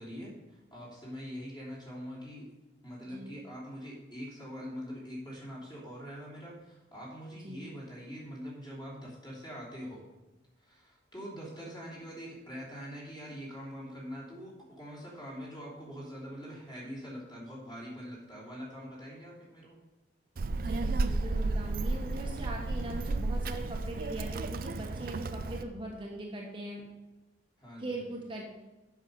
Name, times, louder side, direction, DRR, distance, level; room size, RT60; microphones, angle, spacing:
voice 1, 0.0-2.5 2.8-10.0 10.6-19.8 27.6-28.1, equal, 25° left, -5 dB, 3.3 m, -44 dB
voice 2, 3.0-3.4 7.4-7.6 20.6-26.8 27.8-28.4, right 1 dB, 25° right, -2 dB, 1.2 m, -40 dB
Child speech kid speaking, 20.4-25.6, right 2 dB, 50° right, 0.5 m, -33 dB
8.0 x 6.5 x 5.5 m, 1.1 s
head